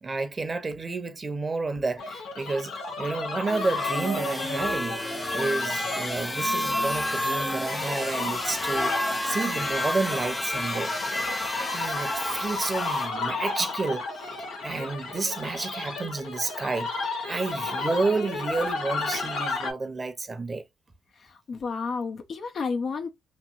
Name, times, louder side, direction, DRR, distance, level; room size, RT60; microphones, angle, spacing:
voice 1, 0.0-8.9 9.2-10.9 11.6-14.3 14.6-20.6, right 3 dB, 40° right, 0.8 m, -30 dB
sound 1, 2.0-19.7, left 3 dB, 85° left, 0.9 m, -33 dB
sound 2, 3.5-13.1, left 1 dB, 15° left, 0.7 m, -30 dB
voice 2, 21.2-23.1, left 4 dB, 60° left, 0.6 m, -31 dB
3.0 x 2.6 x 2.5 m
supercardioid pair, 60°, 0 cm